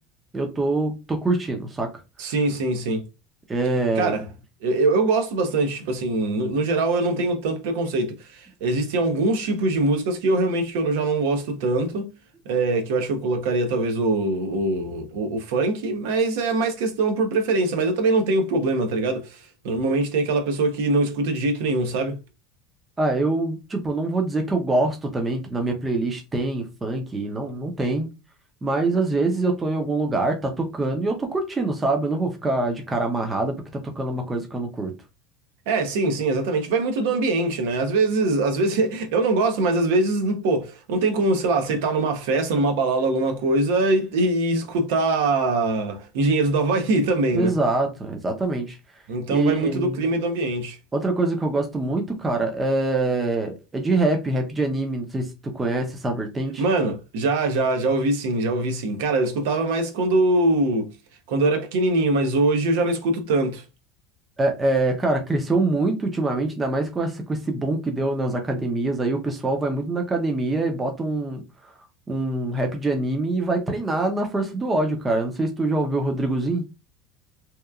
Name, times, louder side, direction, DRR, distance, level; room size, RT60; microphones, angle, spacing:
voice 1, 0.3-1.9 3.5-4.2 23.0-28.1 28.6-34.9 47.3-48.8 49.1-50.1 50.9-56.6 64.4-71.7 72.1-76.6, right 2 dB, 15° right, 0.5 m, -24 dB
voice 2, 2.2-3.0 4.0-4.3 4.6-12.1 12.5-22.2 35.7-47.5 49.1-50.8 56.6-60.9 61.3-63.6, right 2 dB, 75° right, 0.6 m, -23 dB
2.8 x 2.3 x 2.3 m
cardioid pair, 170°, 0 cm